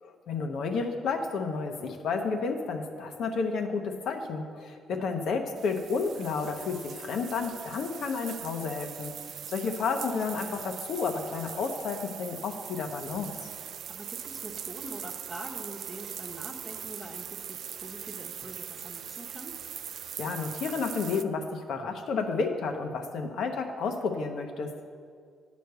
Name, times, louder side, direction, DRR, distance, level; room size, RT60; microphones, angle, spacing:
voice 1, 0.0-9.1 9.5-13.5 20.2-24.9, left 4 dB, 70° left, 5 dB, 0.9 m, -31 dB
sound 1, 5.6-21.2, right 9 dB, 65° right, 0.3 m, -41 dB
voice 2, 13.9-19.6, right 1 dB, 25° right, -4 dB, 1.0 m, -44 dB
9.3 x 5.1 x 8.0 m, 2.2 s
cardioid pair, 90°, 0 cm